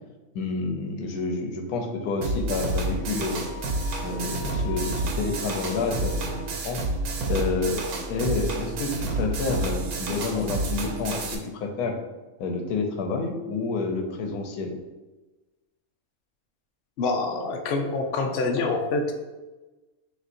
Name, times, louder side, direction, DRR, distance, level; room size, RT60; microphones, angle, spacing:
voice 1, 0.3-3.5 4.0-6.8 7.3-7.8 8.1-12.0 12.4-14.8, left 3 dB, 85° left, 4 dB, 1.1 m, -29 dB
sound 1, 2.2-11.4, right 2 dB, 85° right, 1.1 m, -29 dB
Wind instrument woodwind instrument, 3.0-6.9, left 6 dB, 65° right, 1.1 m, -44 dB
voice 2, 17.0-19.1, left 3 dB, 65° left, 4 dB, 0.7 m, -26 dB
6.2 x 2.8 x 2.5 m, 1.1 s
omnidirectional pair, 1.5 m